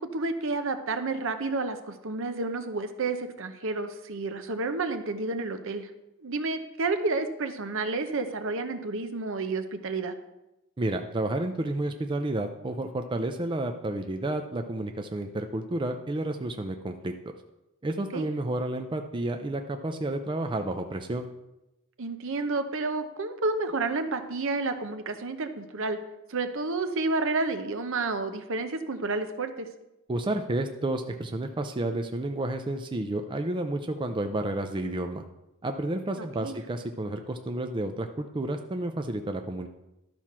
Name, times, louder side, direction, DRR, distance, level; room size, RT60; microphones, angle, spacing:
voice 1, 0.0-5.9 6.2-10.1 18.1-18.3 22.0-26.0 26.3-29.7 36.2-36.6, right 3 dB, 65° right, 8 dB, 0.8 m, -30 dB
voice 2, 10.8-17.1 17.8-21.3 30.1-35.2 35.6-39.7, right 1 dB, 20° right, 5 dB, 0.4 m, -31 dB
12.0 x 4.3 x 6.0 m, 0.93 s
head